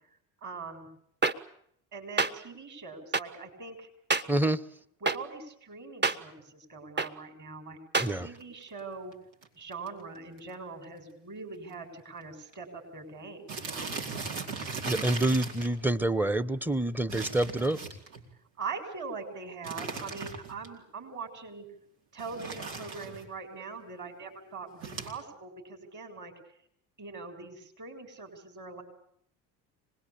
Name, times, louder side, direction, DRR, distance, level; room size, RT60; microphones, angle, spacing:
voice 1, 0.4-0.9 1.9-3.9 5.0-7.8 8.1-9.1 9.5-14.0 18.6-21.7 22.1-26.3 27.0-28.8, right 4 dB, 35° right, 5 dB, 7.8 m, -42 dB
sound 1, 1.2-1.3 2.2-2.3 3.1-3.2 4.1-4.2 5.1-5.2 6.0-6.2 7.0-7.1 7.9-8.1, right 3 dB, 20° right, 1.5 m, -25 dB
voice 2, 4.3-4.6 8.0-8.3 14.9-17.8, right 1 dB, 5° right, 16 dB, 1.1 m, -27 dB
sound 2, 8.2-8.4 9.1-9.2 9.4-9.5 9.7-10.0 10.4-10.5 10.8-10.9 11.7-11.8 12.0-12.2 12.5-12.6 13.5-15.7 17.1-18.3 19.6-20.7 22.2-23.3 24.8-25.1, right 4 dB, 70° right, 4.4 m, -38 dB
25.5 x 20.5 x 8.8 m, 0.69 s
hypercardioid pair, 65°, 49 cm